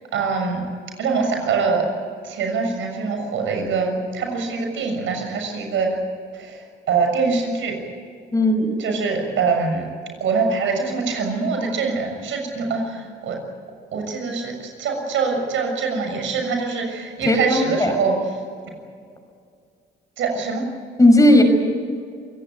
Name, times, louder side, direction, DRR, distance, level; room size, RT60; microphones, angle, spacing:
voice 1, 0.1-0.6 1.0-1.9 2.2-6.0 6.4-7.8 8.8-9.9 10.2-13.4 13.9-18.2 20.2-20.7, right 4 dB, 75° right, 3 dB, 6.7 m, -24 dB
voice 2, 8.3-8.8 17.2-17.9 21.0-21.4, left 1 dB, 15° left, 5 dB, 5.9 m, -15 dB
27.5 x 17.5 x 9.3 m, 2.2 s
cardioid pair, 90°, 20 cm